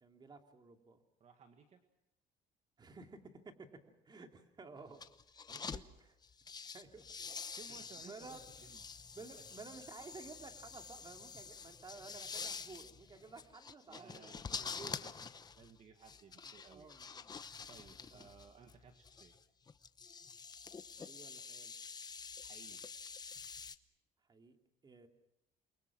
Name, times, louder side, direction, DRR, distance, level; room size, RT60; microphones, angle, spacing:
voice 1, 0.0-1.0 2.8-3.7 4.0-5.0 5.6-5.8 6.7-7.1 7.7-8.4 9.1-14.3 14.6-15.1 16.6-17.3 18.0-18.3 21.0-21.7 24.3-24.6 24.8-25.1, right 4 dB, 25° right, 4 dB, 2.8 m, -54 dB
voice 2, 1.2-1.8 5.5-5.9 7.5-8.8 9.2-9.3 13.9-16.9 17.7-19.3 22.4-22.8, right 6 dB, 45° right, 6 dB, 1.8 m, -59 dB
sound 1, 4.9-5.8 6.2-23.8, left 5 dB, 25° left, 0.9 m, -48 dB
29.0 x 23.0 x 6.2 m, 0.84 s
cardioid pair, 125°, 16 cm